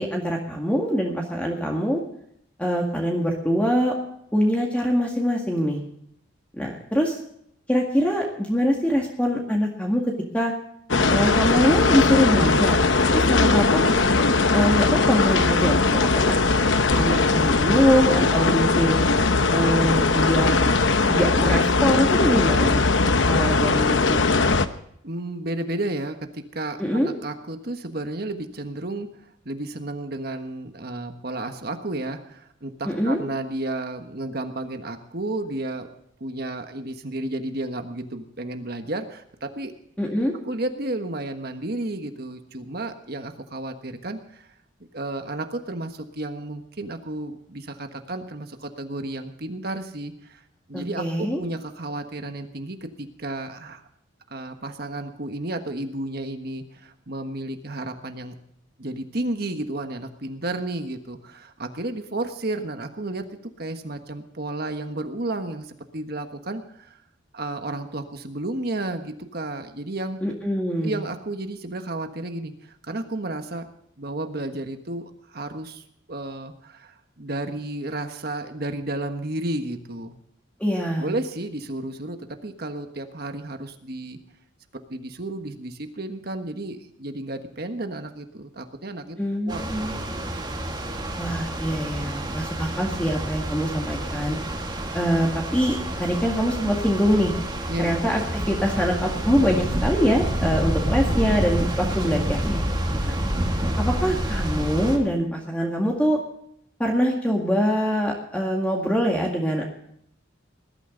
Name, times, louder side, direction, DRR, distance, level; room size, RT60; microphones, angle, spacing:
voice 1, 0.0-2.0 2.6-4.0 4.3-5.8 6.6-7.2 7.7-10.5 11.1-12.8 13.1-13.9 14.5-16.4 16.9-19.0 19.5-20.6 21.1-22.8 23.3-24.6 26.8-27.1 32.9-33.2 40.0-40.3 50.7-51.4 70.2-71.0 80.6-81.1 89.2-89.9 91.2-94.4 94.9-97.3 97.8-103.2 103.8-106.2 106.8-109.6, equal, 5° left, -1 dB, 2.0 m, -24 dB
sound 1, 10.9-24.7, left 3 dB, 65° left, 0.9 m, -20 dB
voice 2, 25.0-35.9 36.2-39.7 40.4-44.5 44.9-50.4 50.7-53.8 54.3-58.3 58.8-63.3 63.6-67.0 67.3-70.2 70.8-73.7 74.0-75.8 76.1-80.2 81.0-84.2 84.9-89.2 89.5-90.2 97.7-97.9, right 2 dB, 50° right, 7 dB, 1.4 m, -32 dB
sound 2, 89.5-105.0, right 1 dB, 20° right, 2.3 m, -28 dB
20.5 x 12.5 x 3.9 m, 0.70 s
head